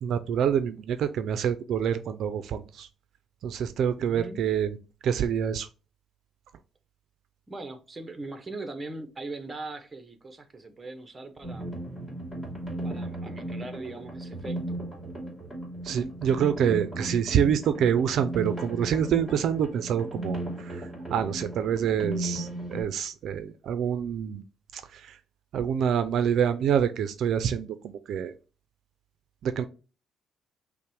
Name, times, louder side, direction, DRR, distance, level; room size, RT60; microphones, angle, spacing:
voice 1, 0.0-2.9 3.4-4.8 5.0-5.7 15.8-24.4 24.7-25.2 25.5-28.3 29.4-29.6, right 8 dB, 65° right, 0.4 m, -27 dB
voice 2, 4.0-4.4 7.5-11.7 12.8-14.8 20.8-20.9, right 2 dB, 20° right, 0.7 m, -40 dB
sound 1, 11.4-22.8, right 1 dB, 5° left, 2.5 m, -36 dB
5.7 x 2.1 x 4.5 m
cardioid pair, 130°, 0 cm